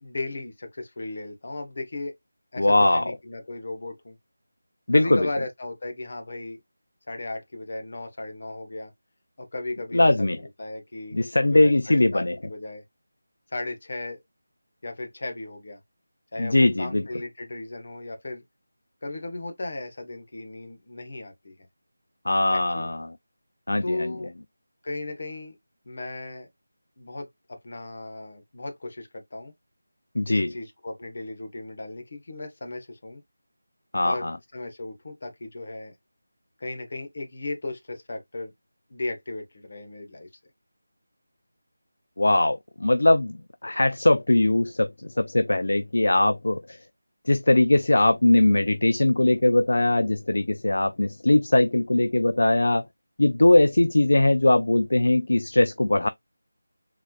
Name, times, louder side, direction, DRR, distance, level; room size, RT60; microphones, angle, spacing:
voice 1, 0.0-2.2 2.5-4.2 4.9-6.6 7.1-8.9 9.4-11.2 11.5-12.8 13.5-14.2 14.8-15.8 16.3-18.4 19.0-21.5 22.5-22.9 23.8-24.3 24.8-25.5 25.9-26.5 27.0-29.5 30.3-33.2 34.0-35.9 36.6-38.5 38.9-40.3, left 2 dB, 45° left, 1.1 m, -36 dB
voice 2, 2.6-3.0 4.9-5.3 9.9-10.4 11.1-12.4 16.4-17.0 22.3-23.2 23.7-24.1 30.2-30.5 33.9-34.4 42.2-46.8 47.3-52.8 53.2-56.1, left 2 dB, 75° left, 0.4 m, -21 dB
4.0 x 3.1 x 2.3 m
figure-of-eight pair, 175°, 0 cm